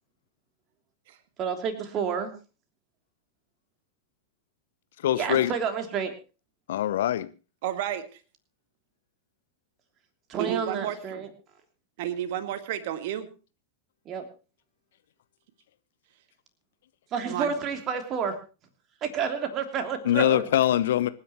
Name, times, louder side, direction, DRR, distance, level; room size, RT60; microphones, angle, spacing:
voice 1, 1.4-2.3 5.2-6.1 10.3-11.3 14.0-14.2 17.1-18.3 19.0-20.4, right 6 dB, 30° right, 3.1 m, -29 dB
voice 2, 5.0-5.5 6.7-7.3 20.0-21.1, left 12 dB, 60° left, 0.9 m, -23 dB
voice 3, 7.6-8.0 10.4-11.2 12.0-13.3 17.2-17.5, right 10 dB, 50° right, 1.8 m, -31 dB
25.5 x 10.0 x 3.1 m
figure-of-eight pair, 90°, 0 cm